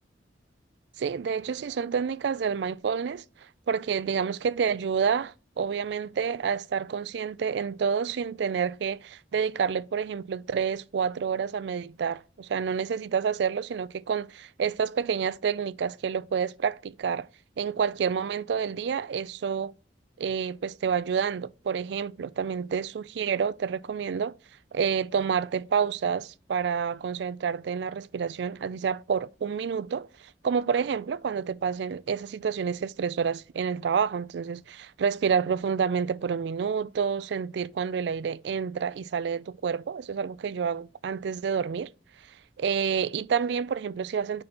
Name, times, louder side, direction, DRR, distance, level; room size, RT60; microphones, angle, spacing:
voice 1, 1.0-3.2 3.7-17.3 17.6-19.7 20.2-24.3 24.7-30.1 30.4-41.9 42.6-44.4, right 6 dB, 70° right, 0.3 m, -28 dB
5.1 x 4.1 x 5.7 m
head